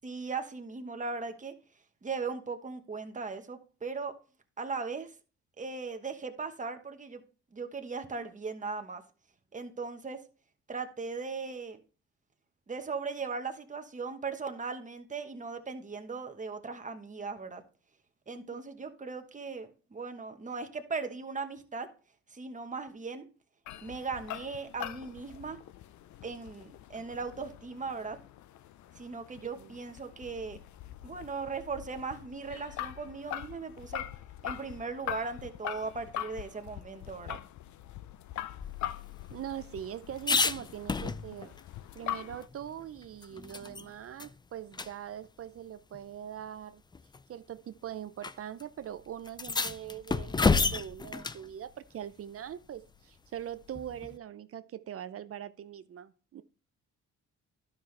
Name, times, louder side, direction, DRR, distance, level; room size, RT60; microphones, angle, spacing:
voice 1, 0.0-1.5 2.0-4.1 4.6-5.1 5.6-7.2 7.5-9.0 9.5-10.2 10.7-11.8 12.7-17.6 18.3-21.9 22.3-23.3 23.8-25.6 26.2-28.2 28.9-30.6 31.0-34.0 34.4-37.4, right 4 dB, 25° right, 1.2 m, -38 dB
voice 2, 18.3-18.6 29.4-29.7 39.3-41.6 41.9-46.8 47.3-56.4, right 10 dB, 50° right, 0.5 m, -42 dB
sound 1, 23.7-42.5, left 12 dB, 70° left, 0.6 m, -43 dB
sound 2, 38.6-41.6 42.0-42.1 42.4-43.9 44.2-44.3 44.7-44.9 45.9-46.0 46.9-47.2 48.2-48.3 48.6-48.7 49.3-51.5 53.7-54.2, left 4 dB, 15° left, 0.4 m, -31 dB
11.5 x 5.7 x 3.3 m
cardioid pair, 90°, 30 cm